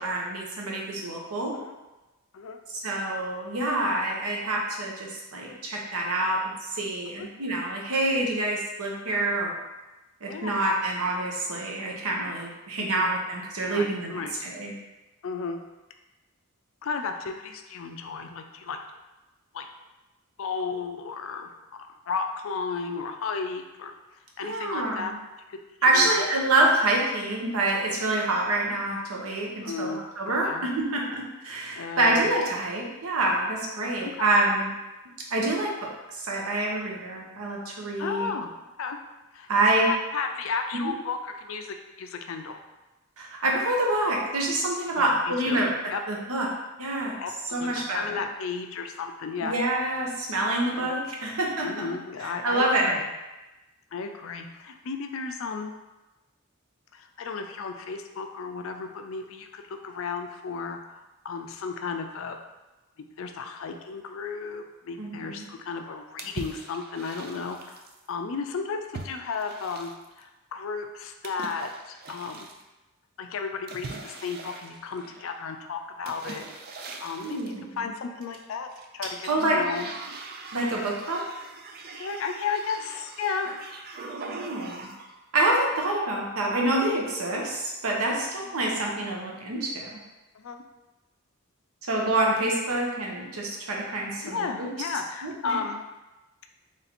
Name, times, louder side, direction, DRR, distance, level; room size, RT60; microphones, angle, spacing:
voice 1, 0.0-1.5 2.8-6.4 6.7-9.5 10.2-14.7 24.4-25.2 25.8-34.7 35.3-38.3 39.5-39.9 40.8-40.9 43.2-45.7 46.1-46.5 46.8-47.2 47.5-48.2 49.4-51.9 52.2-53.0 65.0-65.4 77.2-77.9 79.3-79.6 80.5-81.2 84.3-84.9 85.3-90.0 91.9-94.7 95.2-95.6, right 2 dB, 85° right, -1 dB, 0.9 m, -27 dB
voice 2, 13.6-14.3 15.2-15.6 16.8-18.8 19.5-19.6 20.4-21.5 22.1-23.9 24.4-25.1 25.5-26.1 29.6-30.0 30.4-30.6 31.8-32.3 33.8-34.3 38.0-38.5 38.8-39.0 39.3-42.6 45.0-45.1 45.5-45.6 45.9-46.0 47.2-49.5 50.8-50.9 51.6-53.0 53.9-55.7 56.9-62.4 63.2-69.9 70.2-72.5 73.2-76.4 77.0-78.7 78.9-79.1 79.5-79.9 81.9-83.5 88.4-88.5 90.3-90.6 94.2-95.8, left 5 dB, 65° left, 5 dB, 0.4 m, -34 dB
sound 1, 66.2-68.0 68.9-70.2 71.2-72.6 73.7-75.4 76.0-77.6 78.2-78.8 79.2-85.2, right 3 dB, 45° right, 0.4 m, -41 dB
3.2 x 2.8 x 4.2 m, 1.1 s
head